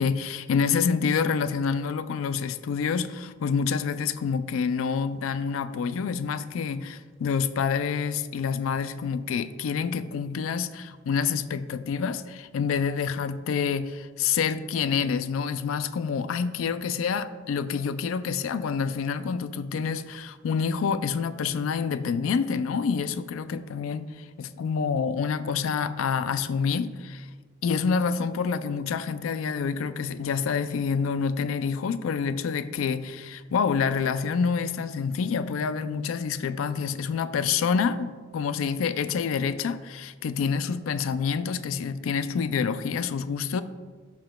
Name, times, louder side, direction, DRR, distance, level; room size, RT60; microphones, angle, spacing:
voice 1, 0.0-27.3 27.6-43.6, left 6 dB, 85° left, 13 dB, 0.4 m, -27 dB
11.5 x 5.9 x 2.2 m, 1.5 s
head